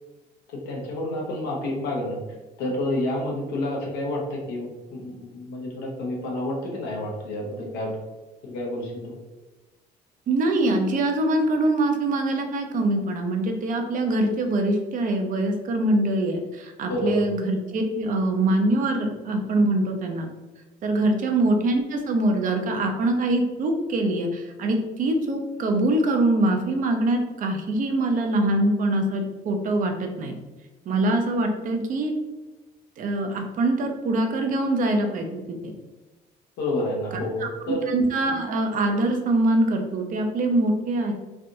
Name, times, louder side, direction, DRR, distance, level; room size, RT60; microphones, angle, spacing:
voice 1, 0.5-2.2 2.6-7.9 8.4-9.1 16.9-17.3 21.1-21.2 36.6-37.9, left 1 dB, 90° left, -1 dB, 0.9 m, -29 dB
voice 2, 10.3-20.3 20.8-30.3 30.9-32.1 33.0-35.7 37.4-41.1, right 2 dB, 50° right, 4 dB, 0.5 m, -24 dB
3.3 x 2.5 x 2.7 m, 1.1 s
cardioid pair, 110°, 17 cm